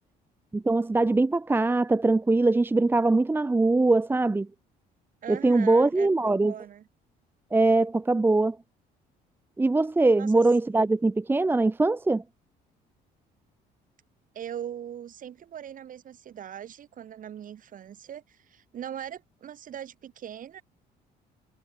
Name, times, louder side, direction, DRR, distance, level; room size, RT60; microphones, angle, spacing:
voice 1, 0.5-4.5 5.3-6.5 7.5-8.6 9.6-12.2, right 2 dB, 10° right, 0.7 m, -22 dB
voice 2, 5.2-6.9 10.2-10.4 14.3-20.6, right 9 dB, 55° right, 5.9 m, -40 dB
cardioid pair, 110°, 17 cm